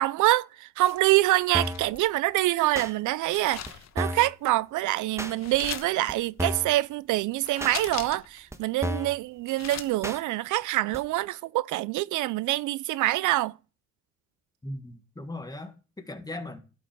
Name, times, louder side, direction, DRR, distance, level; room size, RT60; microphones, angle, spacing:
voice 1, 0.0-3.7 4.0-13.5, right 17 dB, 80° right, 0.5 m, -25 dB
sound 1, 0.8-2.1 3.2-4.2 5.4-6.0 7.4-8.4 8.7-8.8 9.2-9.9, left 9 dB, 60° left, 1.1 m, -40 dB
sound 2, 1.5-1.9 2.7-2.9 3.7-3.8 4.0-4.3 5.2-5.3 6.1-6.2 6.4-6.7 7.6-7.8 8.5-8.6 8.8-9.2 10.0-10.2 10.9-11.0, equal, 10° right, 1.2 m, -31 dB
voice 2, 14.6-16.6, left 1 dB, 15° left, 1.7 m, -38 dB
12.0 x 5.5 x 5.1 m
cardioid pair, 90°, 30 cm